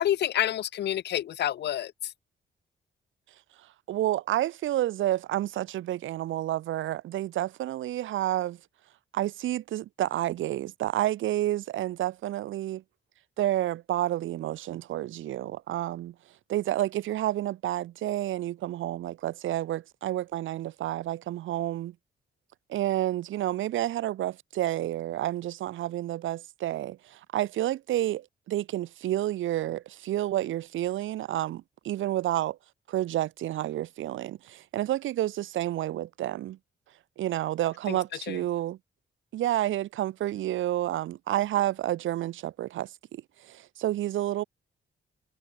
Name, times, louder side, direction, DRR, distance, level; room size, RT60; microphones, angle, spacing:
voice 1, 0.0-2.1 37.9-38.0 38.3-38.4, left 11 dB, 60° left, 0.4 m, -28 dB
voice 2, 3.9-8.6 9.1-12.8 13.4-16.1 16.5-21.9 22.7-32.6 32.9-36.6 37.2-38.8 39.3-44.4, right 13 dB, 85° right, 0.5 m, -30 dB
cardioid pair, 120°, 20 cm